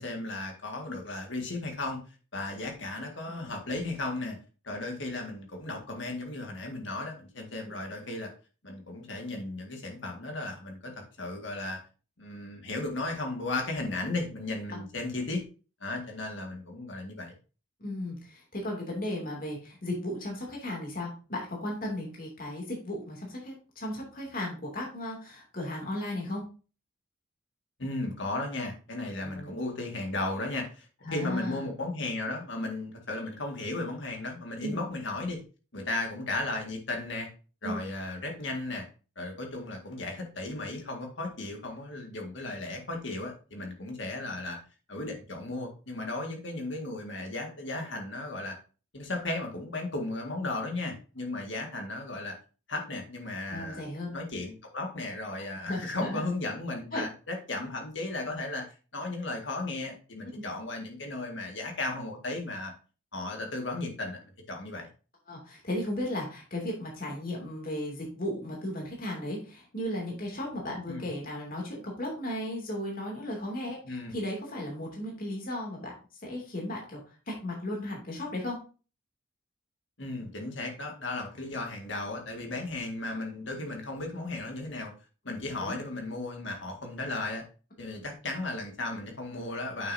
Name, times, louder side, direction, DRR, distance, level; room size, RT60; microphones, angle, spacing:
voice 1, 0.0-2.0 2.3-4.4 4.6-8.3 8.6-11.8 12.2-15.4 15.8-17.3 27.8-35.4 35.7-37.3 37.6-38.9 39.2-44.6 44.9-48.6 48.9-52.3 52.7-53.8 54.1-58.7 58.9-62.7 63.1-64.2 64.5-64.9 70.9-71.1 73.9-74.1 80.0-84.9 85.2-87.4 87.8-89.9, left 2 dB, 65° left, 2 dB, 1.9 m, -35 dB
voice 2, 17.8-26.4 29.2-29.5 31.0-31.7 34.6-34.8 37.6-37.8 53.5-54.2 55.6-56.2 56.9-57.1 60.3-60.4 65.3-75.9 76.2-78.6 85.6-85.8, left 1 dB, 45° left, -1 dB, 2.7 m, -35 dB
8.9 x 6.2 x 2.7 m, 0.35 s
head